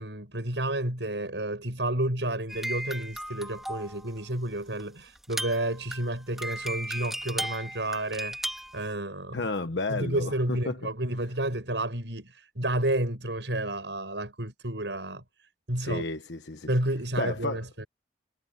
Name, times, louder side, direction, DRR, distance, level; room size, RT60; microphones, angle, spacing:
voice 1, 0.0-8.4 8.7-9.5 9.9-15.2 15.7-16.1 16.7-17.9, right 1 dB, 85° right, 7.8 m, -31 dB
sound 1, 2.5-4.2 4.8-4.9 5.2-8.9, equal, ahead, 2.3 m, -36 dB
voice 2, 9.3-10.8 15.8-16.7 17.2-17.6, left 3 dB, 80° left, 1.2 m, -32 dB
head